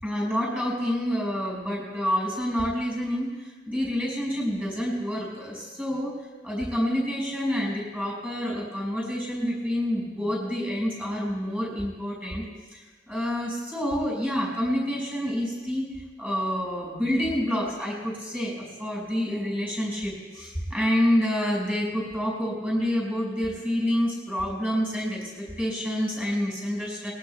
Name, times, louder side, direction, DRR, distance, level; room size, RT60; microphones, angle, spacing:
voice 1, 0.0-6.1 6.4-12.5 12.7-15.9 16.2-27.1, equal, 10° right, -3 dB, 5.3 m, -28 dB
22.5 x 20.5 x 2.3 m, 1.3 s
head